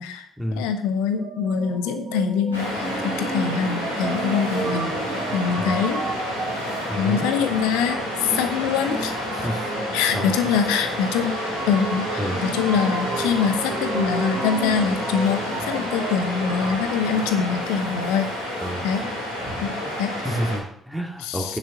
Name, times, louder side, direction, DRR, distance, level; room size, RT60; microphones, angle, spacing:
voice 1, 0.6-6.0 6.6-9.1 9.9-11.4 11.7-18.3 18.8-19.0 19.6-20.1 21.2-21.6, left 7 dB, 70° left, 8 dB, 1.0 m, -24 dB
sound 1, 1.1-16.8, right 4 dB, 45° right, 2.6 m, -33 dB
Waves surf, 2.5-20.6, left 1 dB, 85° left, 3.3 m, -29 dB
voice 2, 6.8-7.2 9.3-9.7 10.1-10.4 12.2-12.4 18.6-18.8 20.2-21.6, equal, 5° right, 1 dB, 2.1 m, -29 dB
9.3 x 7.6 x 6.0 m, 0.68 s
figure-of-eight pair, 40°, 0 cm